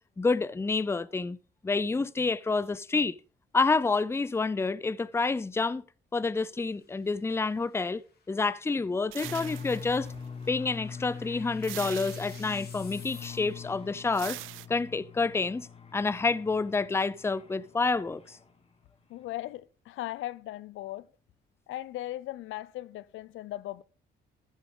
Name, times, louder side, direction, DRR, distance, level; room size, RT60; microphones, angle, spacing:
voice 1, 0.2-1.4 1.6-3.1 3.5-5.8 6.1-8.0 8.3-10.1 10.5-14.4 14.7-18.4, left 4 dB, 15° left, 0.5 m, -28 dB
sound 1, 6.4-13.8, left 5 dB, 50° left, 2.7 m, -56 dB
sound 2, 9.1-10.5 11.6-12.8 14.1-14.7, right 17 dB, 90° right, 0.4 m, -42 dB
sound 3, 9.2-18.8, left 6 dB, 30° left, 1.8 m, -43 dB
voice 2, 19.1-21.1 21.7-23.8, left 15 dB, 80° left, 0.5 m, -38 dB
13.5 x 7.2 x 3.8 m
cardioid pair, 90°, 20 cm